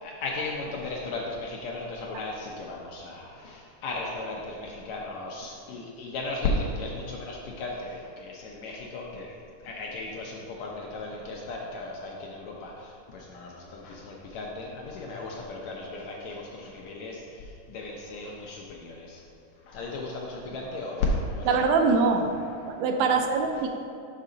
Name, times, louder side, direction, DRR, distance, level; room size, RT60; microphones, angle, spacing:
voice 1, 0.0-9.4 9.6-19.2 19.7-21.5, left 2 dB, 75° left, -2 dB, 1.7 m, -35 dB
voice 2, 21.5-22.3 22.7-23.7, right 4 dB, 80° right, 4 dB, 2.1 m, -23 dB
6.6 x 6.0 x 3.8 m, 2.5 s
omnidirectional pair, 3.7 m